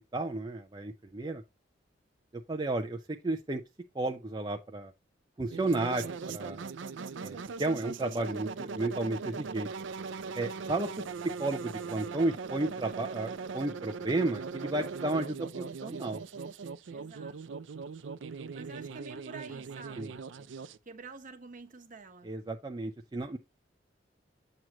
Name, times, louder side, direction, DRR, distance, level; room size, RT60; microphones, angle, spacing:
voice 1, 0.1-1.4 2.3-3.6 3.9-4.9 5.4-6.7 7.2-9.7 10.3-10.9 11.4-16.2 20.0-20.1 22.2-23.4, right 2 dB, 25° right, 0.5 m, -33 dB
sound 1, 5.5-20.8, right 5 dB, 85° right, 0.5 m, -40 dB
voice 2, 16.9-17.6 18.5-20.2 20.9-22.3, right 4 dB, 45° right, 1.0 m, -48 dB
7.7 x 2.9 x 6.0 m
head